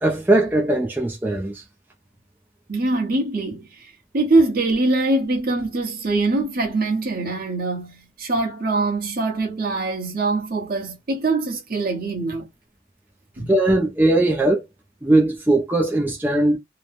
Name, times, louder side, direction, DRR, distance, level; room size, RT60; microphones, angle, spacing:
voice 1, 0.0-1.6 13.5-14.6 15.0-16.6, right 2 dB, 10° right, 0.4 m, -19 dB
voice 2, 2.7-12.5 13.4-13.5, right 2 dB, 45° right, 1.0 m, -23 dB
3.0 x 2.1 x 2.5 m
head